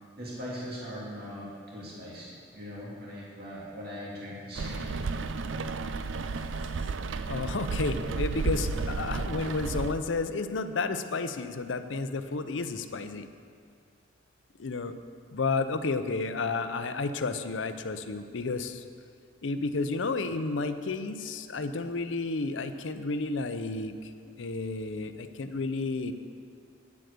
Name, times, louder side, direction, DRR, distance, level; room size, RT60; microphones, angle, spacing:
voice 1, 0.2-4.9, equal, 55° right, -6 dB, 2.5 m, -40 dB
Rain, 4.5-9.9, right 4 dB, 80° right, 0.5 m, -32 dB
voice 2, 7.3-13.3 14.6-14.9 15.3-18.8 19.4-26.1, left 3 dB, 80° left, 10 dB, 0.6 m, -31 dB
9.7 x 7.8 x 6.7 m, 2.2 s
head